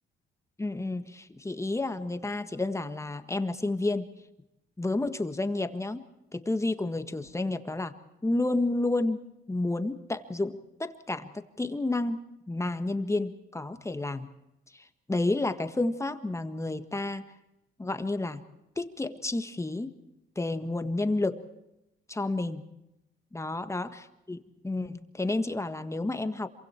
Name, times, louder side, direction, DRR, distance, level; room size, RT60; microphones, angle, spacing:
voice 1, 0.6-4.1 4.8-6.0 6.3-7.9 8.2-14.3 14.7-17.2 17.8-18.4 18.8-19.9 20.3-21.5 22.1-22.7 23.3-24.0 24.3-26.5, left 2 dB, 15° left, 10 dB, 1.6 m, -30 dB
26.5 x 24.0 x 4.5 m, 0.91 s
cardioid pair, 90°, 20 cm